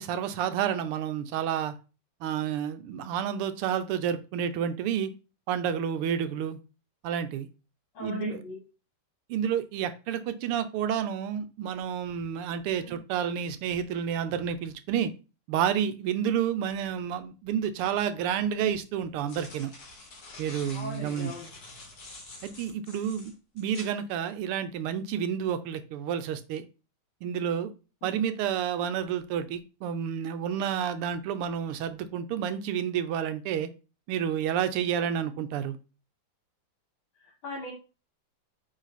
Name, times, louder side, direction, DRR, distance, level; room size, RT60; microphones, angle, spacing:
voice 1, 0.0-1.7 2.2-5.1 5.5-6.6 7.0-7.5 8.0-8.4 9.3-15.1 15.5-19.7 20.4-21.3 22.4-26.6 27.2-27.7 28.0-33.7 34.1-35.8, right 8 dB, 90° right, 10 dB, 1.6 m, -30 dB
voice 2, 7.9-8.6 12.8-12.9 20.7-21.5 28.0-28.2 37.2-37.7, left 2 dB, 70° left, 0 dB, 2.3 m, -39 dB
sound 1, 17.9-18.0 19.0-23.9, left 2 dB, 45° left, 2.4 m, -47 dB
9.0 x 3.3 x 4.1 m, 0.32 s
omnidirectional pair, 2.4 m